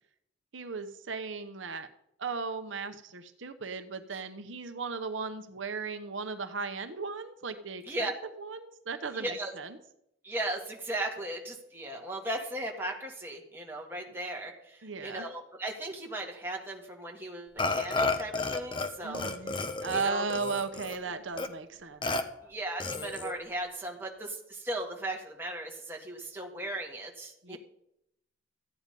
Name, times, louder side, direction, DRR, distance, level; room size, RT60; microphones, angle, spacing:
voice 1, 0.5-1.9 2.2-8.1 8.4-9.8 14.8-15.3 19.0-19.6 19.8-22.4 27.4-27.6, right 4 dB, 80° right, 8 dB, 0.9 m, -36 dB
voice 2, 9.1-9.5 10.2-19.3 19.9-20.2 22.4-27.6, right 1 dB, 10° right, 0 dB, 1.9 m, -37 dB
Burping eructation, 17.6-18.9 19.1-21.0 21.4-21.5 22.0-22.2 22.8-23.3, left 3 dB, 25° left, 0.9 m, -31 dB
14.0 x 9.1 x 5.3 m, 0.78 s
head